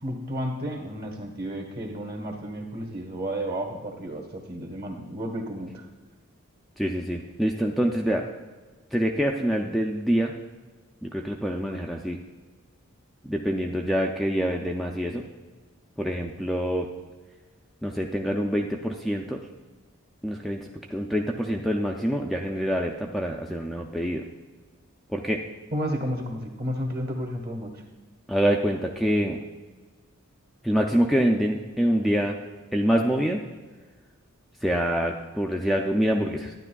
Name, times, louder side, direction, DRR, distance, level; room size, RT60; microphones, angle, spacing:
voice 1, 0.0-5.8 25.7-27.8, equal, 45° right, 3 dB, 1.3 m, -32 dB
voice 2, 6.8-8.3 8.9-10.3 11.0-12.2 13.2-15.2 16.0-16.9 17.8-19.4 20.2-24.2 25.1-25.4 28.3-29.4 30.6-32.4 32.7-33.4 34.6-36.5, equal, ahead, 0 dB, 0.3 m, -26 dB
12.0 x 9.8 x 2.3 m, 1.3 s
head